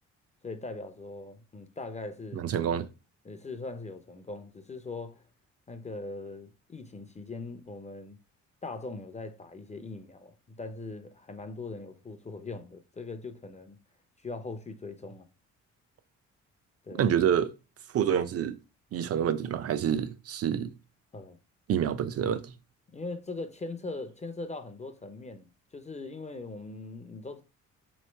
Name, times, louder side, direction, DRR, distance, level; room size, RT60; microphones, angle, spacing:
voice 1, 0.4-2.5 3.2-5.2 5.7-8.2 8.6-13.8 14.2-15.3 16.8-17.0 21.1-21.4 22.9-27.4, left 3 dB, 25° left, 0.5 m, -40 dB
voice 2, 2.3-2.9 16.9-17.5 17.9-18.6 18.9-20.7 21.7-22.5, right 9 dB, 50° right, 0.5 m, -27 dB
3.2 x 3.0 x 4.4 m
cardioid pair, 90°, 30 cm